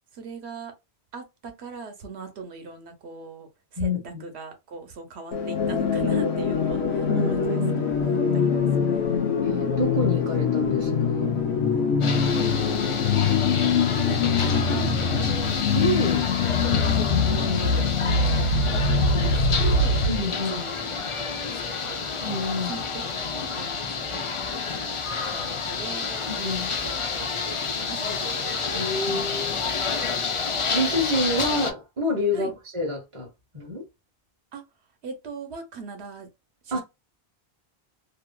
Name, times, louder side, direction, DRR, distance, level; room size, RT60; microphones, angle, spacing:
voice 1, 0.1-0.7 1.1-9.3 12.3-13.5 13.9-15.3 16.4-20.0 20.5-22.1 22.6-24.3 24.7-25.0 25.3-26.3 26.8-29.4 32.3-32.6 34.5-34.6 35.0-36.3 36.6-36.8, right 4 dB, 80° right, 1.1 m, -40 dB
sound 1, 5.3-20.3, left 5 dB, 85° left, 1.0 m, -23 dB
voice 2, 7.1-7.9 9.4-11.4 15.7-16.3 20.1-20.7 22.2-22.8 26.4-26.7 28.7-29.6 30.7-33.3 33.5-33.8 36.7-36.8, left 1 dB, 30° right, 1.0 m, -28 dB
sound 2, 12.0-31.7, left 5 dB, 45° left, 0.4 m, -29 dB
2.9 x 2.5 x 2.2 m
omnidirectional pair, 1.1 m